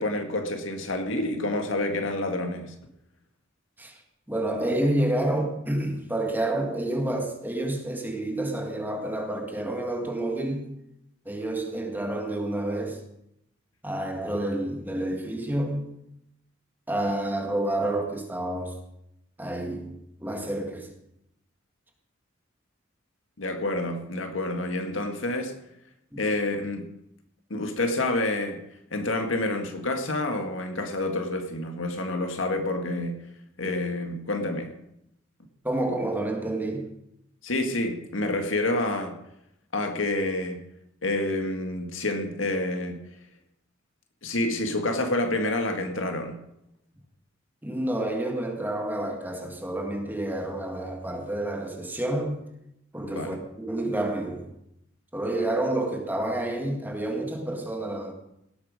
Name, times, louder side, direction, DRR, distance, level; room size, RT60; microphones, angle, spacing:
voice 1, 0.0-2.7 23.4-25.5 26.2-26.9 27.5-28.6 28.9-33.3 33.6-34.7 37.4-39.2 39.7-40.6 41.0-43.0 44.2-46.4 53.1-53.4, left 2 dB, 75° left, 5 dB, 1.9 m, -28 dB
voice 2, 4.3-10.8 11.3-13.0 13.8-15.9 16.9-18.8 19.4-20.9 26.1-26.2 35.6-36.9 47.6-52.4 52.9-54.5 55.1-58.1, right 1 dB, 10° right, 2 dB, 1.9 m, -29 dB
18.0 x 8.5 x 5.3 m, 0.80 s
head